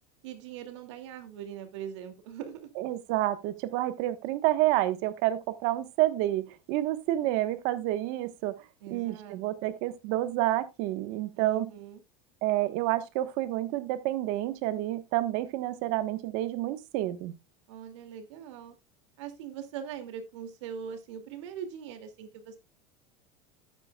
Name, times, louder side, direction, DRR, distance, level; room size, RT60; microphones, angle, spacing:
voice 1, 0.2-2.7 8.8-9.4 11.3-12.0 17.7-18.8 19.2-22.6, right 8 dB, 90° right, 2.5 m, -41 dB
voice 2, 2.8-8.6 8.9-11.7 12.4-17.3, right 15 dB, 55° right, 1.3 m, -29 dB
13.0 x 9.7 x 2.3 m
supercardioid pair, 160°, 15 cm